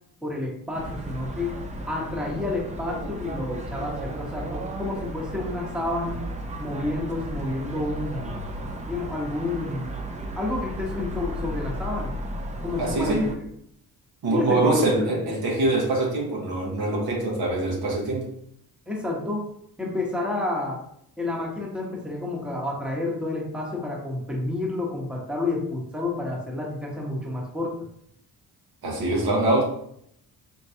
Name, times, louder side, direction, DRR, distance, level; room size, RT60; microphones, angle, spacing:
voice 1, 0.2-1.5 1.9-6.2 6.6-8.4 8.9-10.0 10.4-12.2 12.6-13.4 14.3-15.1 18.9-19.4 19.8-20.8 21.2-27.8, left 2 dB, 5° right, -2 dB, 1.0 m, -30 dB
sound 1, 0.7-13.4, right 1 dB, 20° right, 0.5 m, -34 dB
voice 2, 12.8-13.3 14.2-18.3 28.8-29.6, right 2 dB, 75° right, -2 dB, 1.4 m, -24 dB
4.4 x 3.1 x 2.7 m, 0.69 s
cardioid pair, 115°, 37 cm